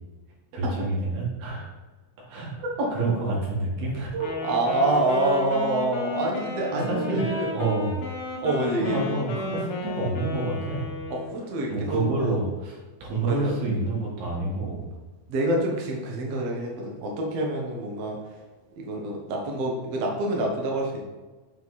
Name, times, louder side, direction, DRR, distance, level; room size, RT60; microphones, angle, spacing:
voice 1, 0.5-1.7 2.2-2.5 2.9-4.1 6.7-7.2 7.5-8.0 8.8-10.9 11.7-14.8, right 2 dB, 80° right, -4 dB, 3.7 m, -28 dB
Wind instrument woodwind instrument, 4.1-11.4, left 3 dB, 65° left, 1.8 m, -33 dB
voice 2, 4.1-7.9 8.4-9.0 11.1-12.5 13.2-13.6 15.3-18.2 18.8-21.0, right 2 dB, 60° right, -1 dB, 1.8 m, -27 dB
7.1 x 5.2 x 4.1 m, 1.3 s
omnidirectional pair, 4.3 m